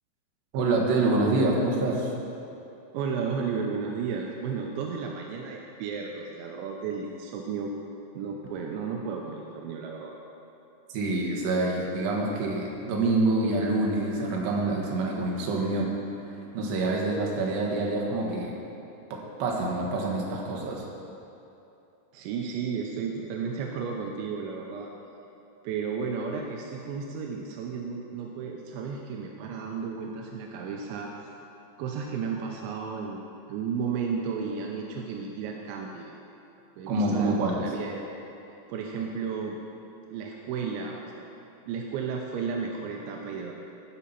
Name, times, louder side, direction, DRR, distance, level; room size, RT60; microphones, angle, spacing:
voice 1, 0.5-2.1 10.9-15.9 16.3-18.6 19.1-20.9 36.9-37.6, right 2 dB, 65° right, -2 dB, 3.2 m, -26 dB
voice 2, 2.9-7.7 8.1-10.1 22.1-24.9 25.6-31.1 31.8-33.2 33.5-36.1 36.8-38.0 38.7-39.6 40.1-41.2 41.7-43.5, right 5 dB, 85° right, 0 dB, 2.7 m, -33 dB
15.5 x 5.7 x 5.7 m, 2.8 s
omnidirectional pair, 5.8 m